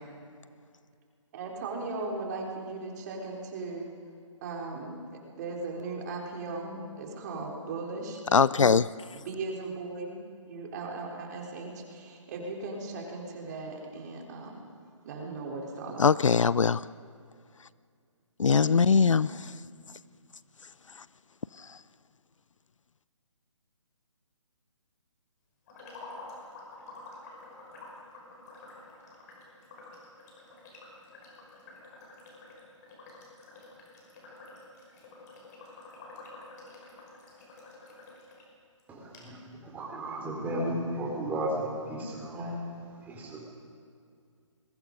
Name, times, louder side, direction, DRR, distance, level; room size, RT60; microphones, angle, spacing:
voice 1, 1.3-3.9 4.4-4.9 5.3-8.2 9.1-10.1 10.5-14.6 15.0-16.2 18.5-19.0, right 3 dB, 35° right, 0 dB, 3.8 m, -37 dB
voice 2, 8.3-8.9 16.0-16.8 18.4-19.3, left 5 dB, 75° left, 19 dB, 0.5 m, -21 dB
sound 1, 25.7-38.4 38.8-38.9 39.1-39.2, left 2 dB, 30° left, 5.9 m, -49 dB
voice 3, 38.9-39.4 39.6-42.6 43.0-43.4, right 1 dB, 10° right, -2 dB, 4.6 m, -34 dB
28.0 x 22.0 x 5.3 m, 2.3 s
figure-of-eight pair, 145°, 16 cm